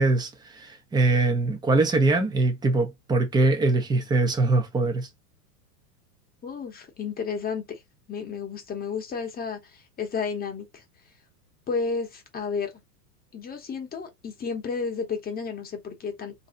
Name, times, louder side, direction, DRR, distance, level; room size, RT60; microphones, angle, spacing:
voice 1, 0.0-5.1, right 3 dB, 10° right, 0.6 m, -22 dB
voice 2, 6.4-7.8 8.1-10.8 11.7-12.7 13.3-16.3, left 5 dB, 20° left, 1.0 m, -32 dB
3.1 x 2.7 x 3.8 m
supercardioid pair, 130°, 47 cm